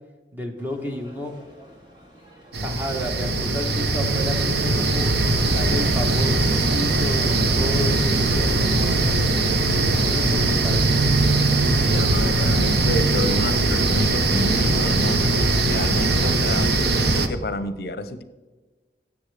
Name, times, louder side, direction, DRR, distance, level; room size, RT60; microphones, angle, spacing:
voice 1, 0.3-1.3 2.6-5.1 5.4-9.4 10.1-10.9, left 1 dB, 10° right, 3 dB, 1.1 m, -32 dB
sound 1, 0.6-16.4, right 1 dB, 25° right, 2.0 m, -43 dB
sound 2, 2.5-17.3, right 2 dB, 70° right, 0.8 m, -20 dB
voice 2, 11.8-15.2 15.7-18.2, left 2 dB, 60° left, 11 dB, 0.6 m, -29 dB
17.0 x 7.1 x 3.3 m, 1.2 s
head